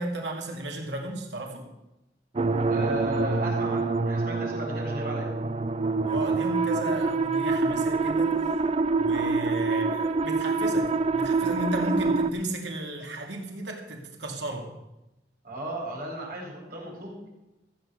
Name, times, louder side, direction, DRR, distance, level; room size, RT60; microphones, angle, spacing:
voice 1, 0.0-1.7 6.1-8.6 9.0-14.7, right 1 dB, 90° right, 2 dB, 2.3 m, -34 dB
sound 1, 2.4-12.3, right 3 dB, 35° right, 0.6 m, -26 dB
voice 2, 2.7-5.3 15.4-17.2, right 1 dB, 55° right, -1 dB, 4.5 m, -35 dB
14.0 x 8.8 x 6.4 m, 0.95 s
head